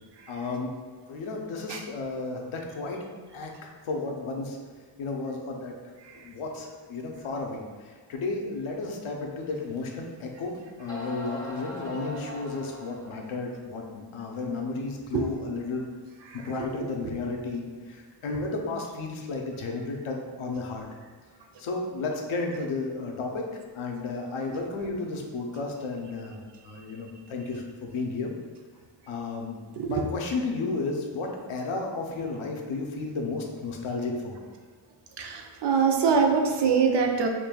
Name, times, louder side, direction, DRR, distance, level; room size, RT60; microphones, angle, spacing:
voice 1, 0.3-0.7 1.1-3.0 3.3-3.5 3.9-4.6 5.0-5.7 6.1-15.9 16.3-20.9 21.6-23.5 23.7-28.3 29.1-29.6 29.9-34.4, left 3 dB, 75° left, 1 dB, 0.7 m, -33 dB
sound 1, 9.8-9.9 10.5-10.6 10.9-13.3, equal, 10° left, 0.7 m, -40 dB
voice 2, 35.2-37.3, right 5 dB, 60° right, 3 dB, 0.5 m, -23 dB
5.1 x 2.6 x 2.2 m, 1.6 s
wide cardioid pair, 155°, 50 cm